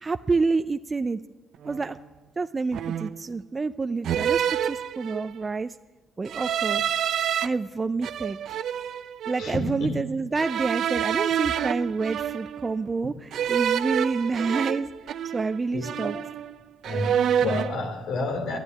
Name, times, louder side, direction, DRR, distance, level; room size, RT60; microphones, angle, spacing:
voice 1, 0.0-1.2 1.6-2.0 2.4-5.8 6.2-6.8 7.4-8.4 9.3-14.9 15.3-16.2, right 4 dB, 30° right, 10 dB, 0.5 m, -28 dB
sound 1, 1.6-1.9 2.7-3.3 4.0-5.5 6.3-7.5 8.0-9.6 10.4-12.7 13.3-15.6 15.8-16.6 16.8-17.8, right 9 dB, 70° right, 0.6 m, -28 dB
voice 2, 9.4-10.0 14.4-14.6 15.7-16.1 16.8-18.6, left 2 dB, 80° left, 4 dB, 3.4 m, -30 dB
12.5 x 11.5 x 9.9 m, 1.2 s
cardioid pair, 90°, 0 cm